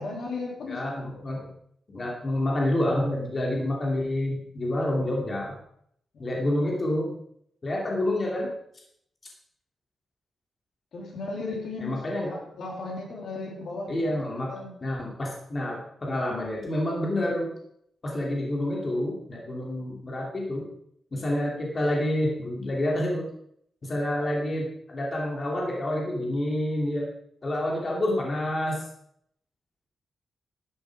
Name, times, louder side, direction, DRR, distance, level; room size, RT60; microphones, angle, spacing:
voice 1, 0.0-0.9 6.1-6.6 10.9-14.8, left 3 dB, 70° left, 0 dB, 3.6 m, -36 dB
voice 2, 0.7-1.4 1.9-5.6 6.2-7.1 7.6-8.5 11.8-12.3 13.9-14.5 14.8-17.5 18.0-20.7 21.1-23.3 23.8-27.1 27.4-28.9, left 1 dB, 35° left, -2 dB, 2.9 m, -28 dB
12.0 x 10.5 x 4.9 m, 0.69 s
wide cardioid pair, 145°, 0 cm